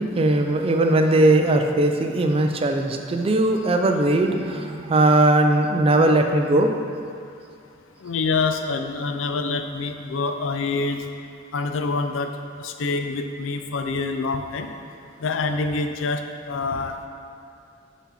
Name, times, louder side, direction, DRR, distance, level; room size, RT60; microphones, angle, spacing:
voice 1, 0.0-6.7, right 2 dB, 30° right, 4 dB, 0.4 m, -19 dB
voice 2, 8.0-11.0 11.5-12.3 12.6-14.7 15.2-17.0, left 3 dB, 80° left, 6 dB, 0.4 m, -26 dB
6.1 x 4.1 x 4.2 m, 2.6 s
head